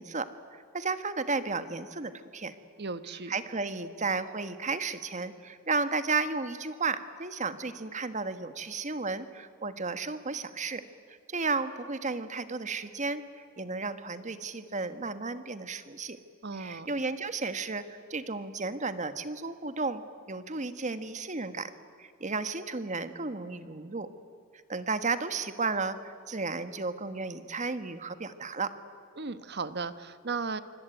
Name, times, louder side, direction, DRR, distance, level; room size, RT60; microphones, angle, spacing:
voice 1, 0.0-2.5 3.3-10.8 11.3-13.2 13.6-16.2 16.6-20.0 20.3-21.7 22.0-24.1 24.7-28.7, right 4 dB, 35° right, 11 dB, 1.5 m, -33 dB
voice 2, 2.8-3.3 16.4-16.9 29.2-30.6, right 4 dB, 55° right, 12 dB, 1.2 m, -36 dB
26.0 x 24.5 x 9.3 m, 2.3 s
head